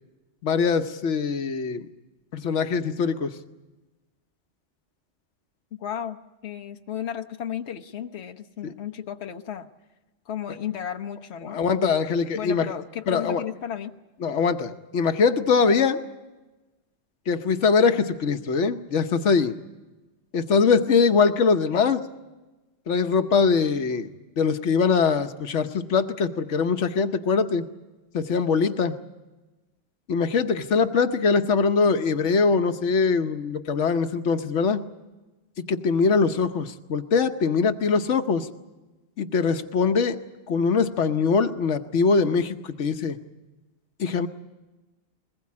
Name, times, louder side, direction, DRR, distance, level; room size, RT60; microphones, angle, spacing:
voice 1, 0.4-1.8 2.3-3.3 11.4-12.7 13.1-13.4 14.2-16.0 17.3-19.5 20.3-22.0 22.9-24.1 24.4-27.7 28.1-28.9 30.1-34.8 35.7-38.5 39.2-40.2 40.5-43.2 44.0-44.3, left 5 dB, 90° left, 8 dB, 1.3 m, -22 dB
voice 2, 5.8-9.7 10.3-11.6 12.3-13.9 21.7-21.9, left 9 dB, 70° left, 6 dB, 1.2 m, -34 dB
22.0 x 20.0 x 8.5 m, 1.1 s
omnidirectional pair, 1.2 m